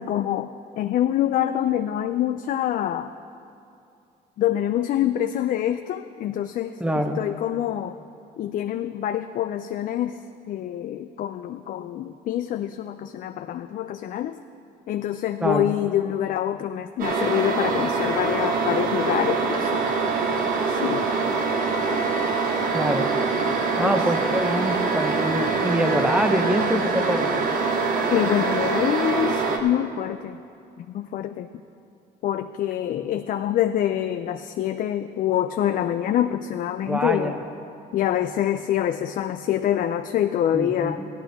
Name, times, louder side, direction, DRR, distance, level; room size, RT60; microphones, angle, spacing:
voice 1, 0.0-3.2 4.4-8.0 8.4-14.4 14.9-19.8 20.7-21.1 23.8-24.0 28.1-30.4 30.8-31.5 32.2-37.4 37.9-41.0, left 11 dB, 55° left, 9 dB, 0.4 m, -26 dB
voice 2, 6.8-7.2 15.4-15.7 22.7-23.1 23.8-27.5 36.9-37.4 40.5-41.1, equal, 5° right, 6 dB, 0.9 m, -25 dB
sound 1, 17.0-29.6, right 4 dB, 55° right, 1.2 m, -24 dB
15.5 x 11.5 x 3.5 m, 2.5 s
cardioid pair, 110°, 17 cm